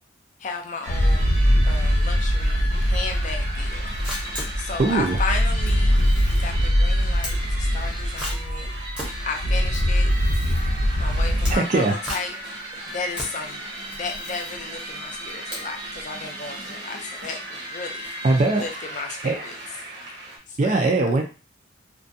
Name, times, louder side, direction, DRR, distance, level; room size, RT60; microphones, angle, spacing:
voice 1, 0.4-1.4 1.6-3.9 4.6-6.1 6.4-8.7 9.3-10.1 11.0-12.3 12.9-13.7 13.9-18.1 18.5-19.5 20.5-20.9, left 4 dB, 40° left, 3 dB, 0.4 m, -34 dB
sound 1, 0.8-20.4, right 1 dB, 65° right, 0.8 m, -36 dB
sound 2, 0.9-11.6, equal, 75° left, 0.7 m, -22 dB
Camera, 4.0-16.1, equal, 5° right, 0.7 m, -38 dB
voice 2, 4.8-5.2 11.5-12.0 18.2-18.6 19.2-19.4 20.6-21.2, right 3 dB, 35° right, 2 dB, 0.3 m, -20 dB
2.4 x 2.2 x 2.6 m, 0.33 s
head